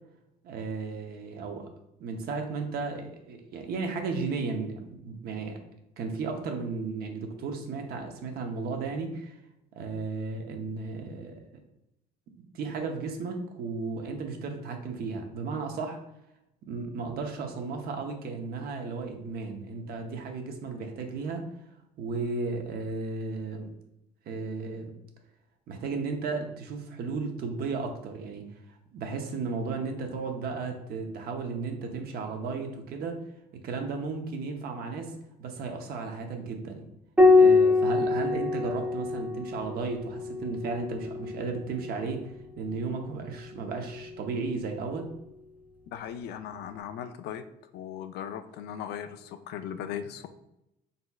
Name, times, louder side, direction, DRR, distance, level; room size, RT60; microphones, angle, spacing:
voice 1, 0.4-1.7 2.0-5.6 6.0-9.3 9.8-11.4 12.5-16.0 16.6-21.4 22.0-23.7 24.3-24.9 25.7-28.5 28.9-33.2 33.6-35.1 35.4-36.9 37.3-42.3 42.6-45.1, right 4 dB, 65° right, 4 dB, 0.8 m, -34 dB
Piano, 37.2-42.0 43.7-44.5, left 3 dB, 10° right, 0.5 m, -24 dB
voice 2, 45.9-47.4 47.7-50.3, left 9 dB, 75° left, 10 dB, 0.4 m, -38 dB
4.1 x 4.1 x 2.3 m, 0.86 s
cardioid pair, 110°, 17 cm